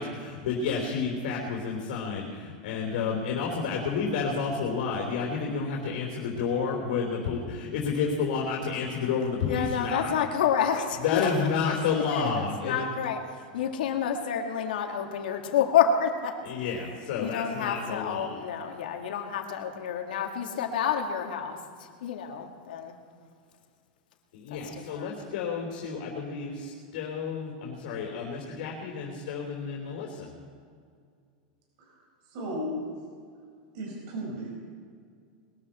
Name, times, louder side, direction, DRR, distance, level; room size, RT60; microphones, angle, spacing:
voice 1, 0.0-10.1 11.0-12.8 16.4-18.4 24.3-30.3, left 5 dB, 65° left, -1 dB, 3.5 m, -30 dB
voice 2, 9.5-13.2 13.5-16.3 17.2-21.6 22.0-23.0 24.9-25.1, left 8 dB, 90° left, 3 dB, 2.0 m, -29 dB
voice 3, 32.3-32.8 33.7-34.6, equal, 50° right, -2 dB, 5.1 m, -35 dB
21.5 x 13.0 x 4.4 m, 2.1 s
supercardioid pair, 165°, 5 cm